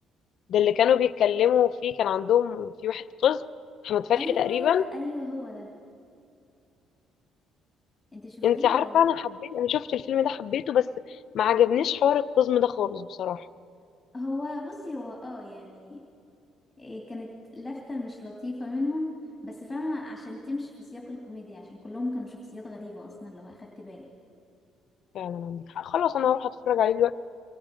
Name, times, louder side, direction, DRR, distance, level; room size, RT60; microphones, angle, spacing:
voice 1, 0.5-3.4 3.8-4.8 8.4-10.9 11.3-13.5 25.1-27.1, left 9 dB, 55° left, 12 dB, 0.6 m, -24 dB
voice 2, 4.1-5.7 8.1-9.0 14.1-16.0 16.8-19.2 19.4-24.1, left 2 dB, 10° left, 0 dB, 2.7 m, -36 dB
29.0 x 25.0 x 5.2 m, 2.5 s
cardioid pair, 135°, 0 cm